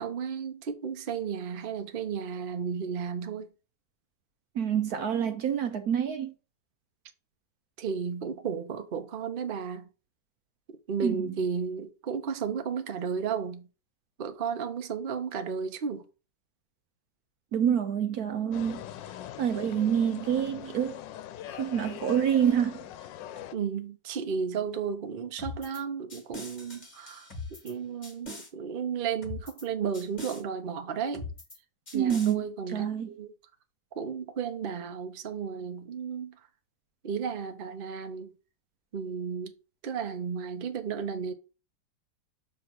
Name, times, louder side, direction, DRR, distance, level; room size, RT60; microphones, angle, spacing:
voice 1, 0.0-3.5 7.8-9.9 10.7-13.7 14.2-16.0 23.5-31.2 31.9-33.3 34.0-36.3 37.0-38.3 38.9-39.5 39.8-41.3, right 6 dB, 45° right, 0.7 m, -33 dB
voice 2, 4.6-6.3 11.0-11.4 17.5-18.8 19.4-21.0 21.5-22.8 31.9-33.1, right 9 dB, 65° right, 1.0 m, -27 dB
sound 1, 18.5-23.5, left 11 dB, 85° left, 1.3 m, -42 dB
sound 2, 25.4-25.8 26.1-27.7 28.0-28.5 29.2-29.7 29.9-30.4 31.1-31.6 31.9-32.3, left 2 dB, 25° left, 1.6 m, -41 dB
6.6 x 3.4 x 5.9 m
omnidirectional pair, 2.0 m